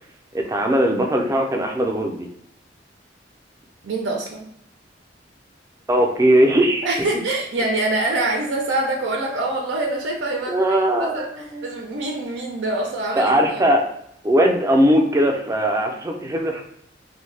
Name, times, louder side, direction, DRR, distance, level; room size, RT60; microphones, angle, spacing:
voice 1, 0.3-2.3 5.9-6.9 10.5-11.7 13.2-13.9 14.2-16.6, equal, 20° right, 2 dB, 0.4 m, -19 dB
voice 2, 3.8-4.5 6.8-11.3 11.6-13.7, right 2 dB, 80° right, 0 dB, 0.5 m, -25 dB
2.6 x 2.1 x 3.1 m, 0.72 s
head